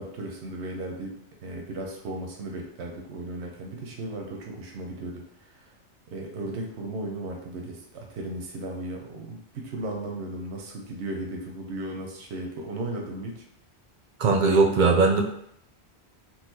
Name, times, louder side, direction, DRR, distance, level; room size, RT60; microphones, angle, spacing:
voice 1, 0.0-5.7 6.1-13.4, right 1 dB, 90° right, 1 dB, 0.9 m, -36 dB
voice 2, 14.2-15.2, right 4 dB, 60° right, 4 dB, 0.5 m, -19 dB
4.0 x 2.4 x 2.6 m, 0.70 s
omnidirectional pair, 1.1 m